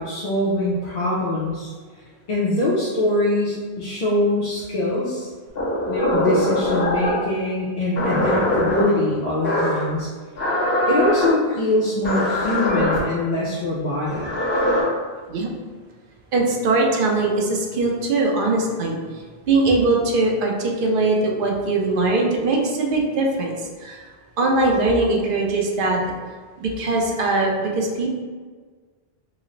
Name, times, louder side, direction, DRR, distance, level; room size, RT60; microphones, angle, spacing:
voice 1, 0.0-1.7 2.3-5.3 5.9-10.1 10.9-14.3, left 1 dB, 50° left, -7 dB, 0.6 m, -23 dB
sound 1, 5.6-7.3 8.0-8.8 9.4-9.9 10.4-11.3 12.0-13.0 14.1-14.8, left 1 dB, 70° left, 1.4 m, -22 dB
voice 2, 16.3-19.0 19.5-24.0 24.4-26.0 26.6-28.1, right 2 dB, 60° right, 0 dB, 0.7 m, -21 dB
3.0 x 2.0 x 3.8 m, 1.5 s
omnidirectional pair, 1.1 m